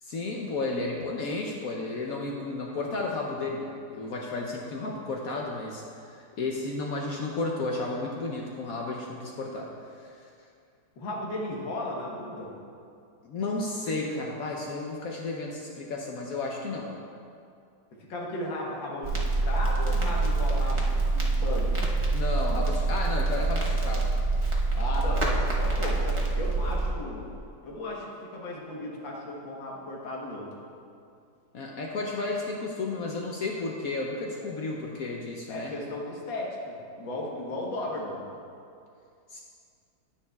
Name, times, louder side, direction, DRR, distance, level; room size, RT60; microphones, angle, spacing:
voice 1, 0.0-9.7 9.9-10.3 13.2-16.9 22.1-24.1 31.5-35.7 39.3-39.4, left 3 dB, 65° left, -1 dB, 0.9 m, -33 dB
voice 2, 11.0-12.5 17.9-21.8 24.7-27.3 27.6-30.5 35.5-38.2, left 1 dB, 85° left, -3 dB, 1.9 m, -35 dB
Crackle, 19.0-26.9, right 3 dB, 35° right, 0.5 m, -26 dB
10.0 x 9.4 x 2.3 m, 2.4 s
omnidirectional pair, 2.0 m